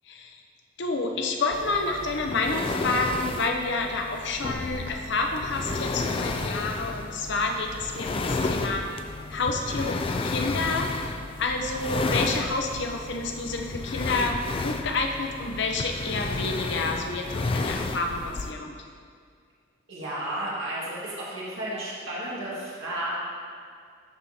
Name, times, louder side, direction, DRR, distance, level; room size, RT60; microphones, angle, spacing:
voice 1, 0.1-0.4 0.8-8.9 9.3-10.9 11.4-14.4 14.6-17.3 17.5-18.7, left 3 dB, 60° left, 3 dB, 0.7 m, -29 dB
sound 1, 1.5-18.5, left 3 dB, 30° left, 0.3 m, -32 dB
voice 2, 19.9-23.1, right 1 dB, 90° right, -7 dB, 1.8 m, -33 dB
12.5 x 4.9 x 2.8 m, 2.1 s
head